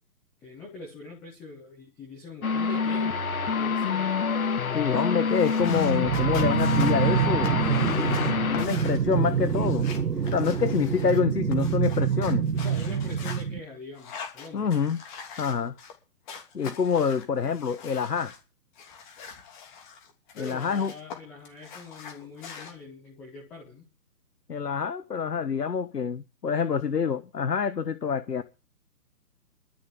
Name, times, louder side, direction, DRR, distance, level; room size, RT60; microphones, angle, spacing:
voice 1, 0.4-3.2 3.5-4.2 4.9-5.3 8.6-9.1 12.5-14.7 20.4-23.9, left 3 dB, 5° left, 0.6 m, -43 dB
sound 1, 2.4-8.7, left 5 dB, 60° left, 1.8 m, -27 dB
voice 2, 4.7-7.5 8.5-9.9 10.3-12.5 14.5-15.0 15.4-15.7 16.5-18.3 20.4-20.9 24.5-28.4, left 6 dB, 75° left, 1.3 m, -26 dB
sound 2, 5.3-13.4 13.9-15.9 16.3-18.4 18.8-21.2 21.4-22.7, left 6 dB, 30° left, 3.0 m, -43 dB
sound 3, 5.6-13.6, right 7 dB, 85° right, 1.3 m, -26 dB
12.5 x 7.5 x 8.8 m
figure-of-eight pair, 135°, 48 cm